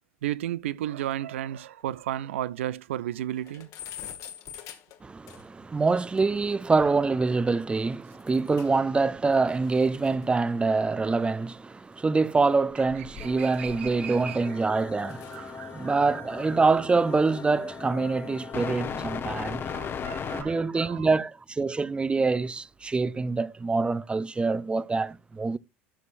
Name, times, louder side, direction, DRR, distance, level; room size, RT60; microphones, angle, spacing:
voice 1, 0.2-3.7 13.2-14.4 15.3-16.0 19.7-21.1, right 12 dB, 80° right, 0.5 m, -34 dB
sound 1, 1.4-1.5 1.8-1.9 2.2-2.3 2.7-2.8 3.1-5.7 6.2-6.3 8.1-8.9 9.2-11.8 12.6-14.2 14.7-15.5, left 9 dB, 50° left, 1.5 m, -46 dB
voice 2, 5.0-19.7 20.3-25.6, right 4 dB, 15° right, 0.5 m, -25 dB
sound 2, 13.2-20.4, left 7 dB, 35° left, 1.1 m, -37 dB
12.5 x 6.2 x 2.6 m
hypercardioid pair, 85°, 7 cm